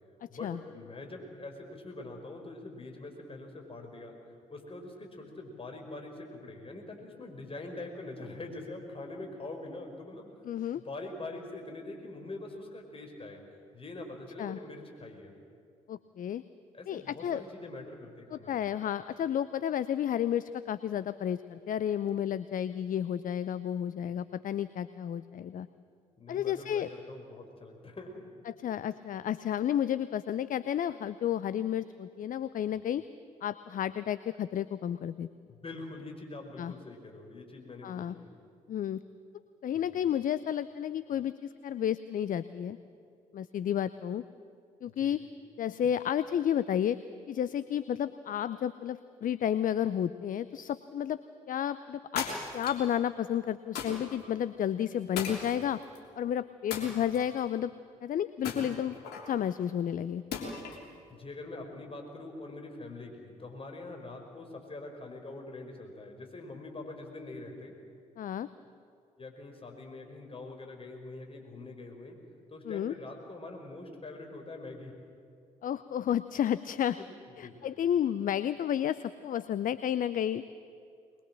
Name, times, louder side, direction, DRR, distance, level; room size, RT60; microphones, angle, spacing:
voice 1, 0.3-4.2 4.5-10.3 10.7-13.4 13.7-15.3 16.7-18.6 26.2-28.3 35.5-38.3 39.9-40.0 44.9-45.2 61.1-67.8 69.2-72.2 72.5-74.9 77.4-77.5, left 2 dB, 30° left, 2 dB, 4.9 m, -44 dB
voice 2, 10.5-10.8 14.4-14.6 15.9-16.4 16.9-17.4 18.3-25.7 26.3-26.9 28.5-33.0 33.4-35.3 36.6-36.7 37.8-38.1 38.7-39.0 39.6-42.8 43.3-44.2 44.8-45.2 45.6-47.0 47.3-51.2 51.5-52.3 52.5-55.8 56.2-57.7 58.0-59.0 59.3-60.2 68.2-68.5 72.7-72.9 75.6-77.0 77.4-80.4, left 10 dB, 50° left, 15 dB, 0.6 m, -31 dB
sound 1, 52.2-52.9 53.8-54.2 55.2-56.0 56.7-57.4 58.4-59.3 60.3-60.9, left 5 dB, 65° left, 3.3 m, -37 dB
22.0 x 21.5 x 7.6 m, 2.4 s
hypercardioid pair, 45°, 18 cm